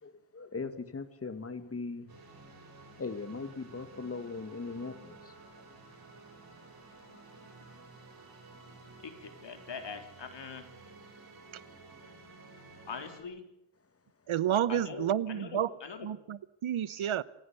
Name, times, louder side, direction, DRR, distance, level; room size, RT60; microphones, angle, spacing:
voice 1, 0.0-2.1 3.0-5.7 16.9-17.1, left 4 dB, 30° left, 2.2 m, -40 dB
sound 1, 2.1-13.2, right 3 dB, 50° right, 7.1 m, -53 dB
voice 2, 9.0-10.7 12.9-13.5 14.7-16.1, left 5 dB, 60° left, 4.0 m, -43 dB
voice 3, 14.3-15.7 16.0-17.2, right 10 dB, 80° right, 1.1 m, -30 dB
28.0 x 16.0 x 8.4 m
wide cardioid pair, 135°, 47 cm